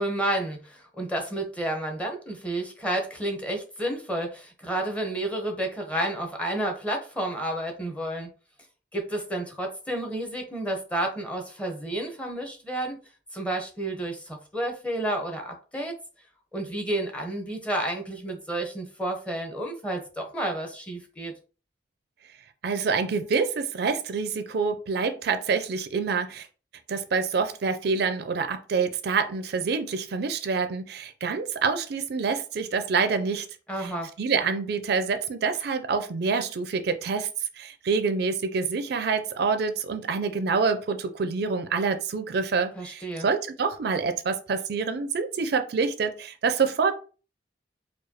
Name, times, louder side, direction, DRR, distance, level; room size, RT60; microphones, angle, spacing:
voice 1, 0.0-8.3 8.9-13.0 13.3-15.9 16.5-21.3 33.7-34.1 42.8-43.3, right 1 dB, 10° left, 2 dB, 0.8 m, -30 dB
voice 2, 22.6-26.5 26.9-33.5 33.8-33.9 34.2-37.3 37.6-46.9, right 5 dB, 65° right, 9 dB, 0.4 m, -27 dB
4.7 x 2.3 x 2.8 m, 0.36 s
head